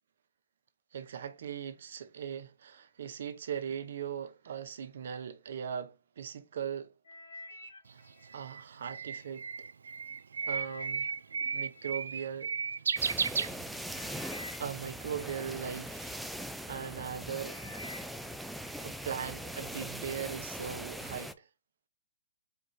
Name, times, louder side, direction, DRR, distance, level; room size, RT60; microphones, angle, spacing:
voice 1, 0.9-6.9 8.3-9.5 10.5-11.0 11.5-12.5 14.6-17.6 18.8-21.4, right 8 dB, 65° right, 0.8 m, -39 dB
sound 1, 7.0-9.4 9.9-12.8 13.5-13.6 13.9-16.2 16.8-17.0 17.3-18.9 19.2-19.7 20.3-20.4, left 2 dB, 70° left, 2.3 m, -51 dB
Bird, 7.9-14.1, right 5 dB, 85° right, 0.3 m, -34 dB
sound 2, 13.0-21.3, equal, ahead, 0.4 m, -41 dB
4.5 x 2.5 x 4.8 m
hypercardioid pair, 140°, 0 cm